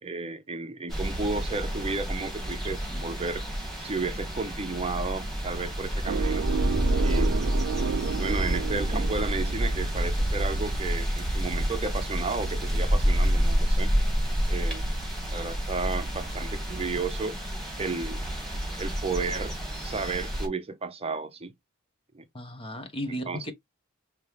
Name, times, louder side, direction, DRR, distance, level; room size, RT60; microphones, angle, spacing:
voice 1, 0.0-3.4 3.8-6.5 7.0-7.5 8.1-13.9 14.5-14.9 15.3-17.4 17.8-18.2 18.8-19.5 19.8-21.5 22.1-22.2 23.1-23.5, right 3 dB, 30° right, 0.7 m, -33 dB
sound 1, 0.9-20.5, equal, ahead, 2.3 m, -28 dB
sound 2, 6.1-10.4, right 7 dB, 60° right, 0.3 m, -32 dB
voice 2, 22.3-23.5, equal, 25° left, 0.9 m, -35 dB
5.4 x 2.9 x 3.3 m
head